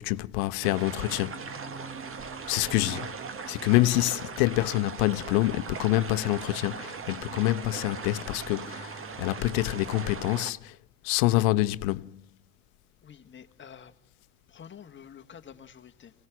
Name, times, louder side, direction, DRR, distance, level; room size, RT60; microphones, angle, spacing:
voice 1, 0.0-1.4 2.5-3.1 3.5-10.8 11.0-12.1, left 18 dB, 75° left, 0.9 m, -26 dB
sound 1, 0.6-10.5, right 5 dB, 30° right, 1.7 m, -39 dB
voice 2, 13.0-13.9 14.5-16.1, left 8 dB, 25° left, 1.6 m, -48 dB
25.5 x 18.5 x 6.1 m
supercardioid pair, 110°, 44 cm